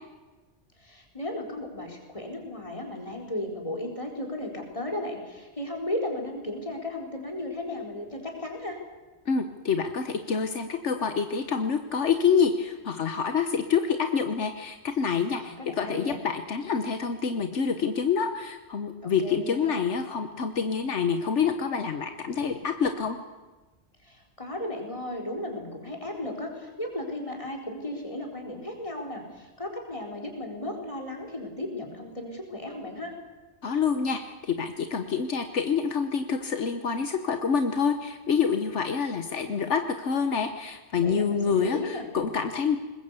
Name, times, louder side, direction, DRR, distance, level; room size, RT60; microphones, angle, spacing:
voice 1, 0.8-8.8 15.3-16.2 19.0-19.9 24.0-33.2 41.0-42.1, left 1 dB, 25° left, 1 dB, 4.4 m, -35 dB
voice 2, 9.3-23.2 33.6-42.8, left 6 dB, 75° left, 8 dB, 1.4 m, -27 dB
21.5 x 20.0 x 8.3 m, 1.2 s
omnidirectional pair, 1.2 m